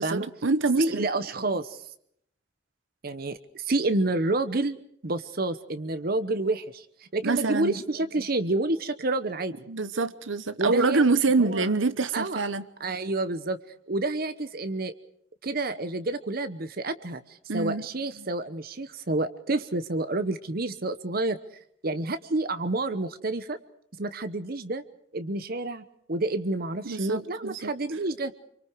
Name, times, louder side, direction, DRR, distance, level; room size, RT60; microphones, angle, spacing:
voice 1, 0.0-1.1 7.2-7.7 9.7-12.6 17.5-17.8 26.8-27.7, right 3 dB, 85° right, 13 dB, 1.0 m, -25 dB
voice 2, 0.8-1.8 3.0-4.8 5.0-9.5 10.6-11.0 11.4-11.7 12.1-12.4 12.8-13.6 13.9-14.9 15.4-21.4 21.8-23.6 24.0-24.8 25.1-28.3, right 2 dB, 50° right, 11 dB, 1.0 m, -29 dB
27.0 x 24.0 x 4.7 m, 0.69 s
head